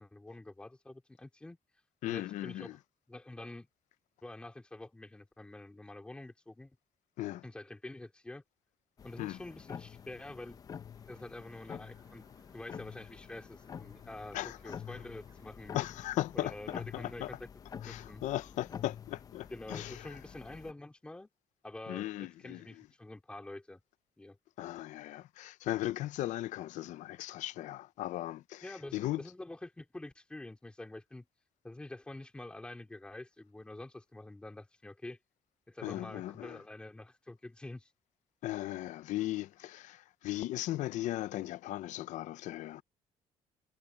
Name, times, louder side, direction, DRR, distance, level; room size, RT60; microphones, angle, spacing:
voice 1, 0.0-1.6 2.1-2.8 3.1-3.7 4.2-6.7 7.4-8.4 9.0-10.6 11.1-12.3 12.5-15.8 16.3-17.4 17.8-18.2 19.5-21.3 21.6-23.8 24.2-24.4 28.6-31.2 31.6-35.2 35.7-37.9, left 2 dB, 10° left, 3.0 m, -47 dB
voice 2, 2.0-2.8 7.2-7.4 9.2-9.4 14.3-14.6 15.7-16.5 16.9-17.3 17.8-20.2 21.9-22.6 24.6-28.6 28.9-29.2 35.8-36.6 38.4-42.8, left 15 dB, 75° left, 0.7 m, -37 dB
sound 1, 9.0-20.7, left 7 dB, 30° left, 0.6 m, -48 dB
sound 2, 10.9-16.0, right 5 dB, 25° right, 6.2 m, -69 dB
cardioid pair, 175°, 13 cm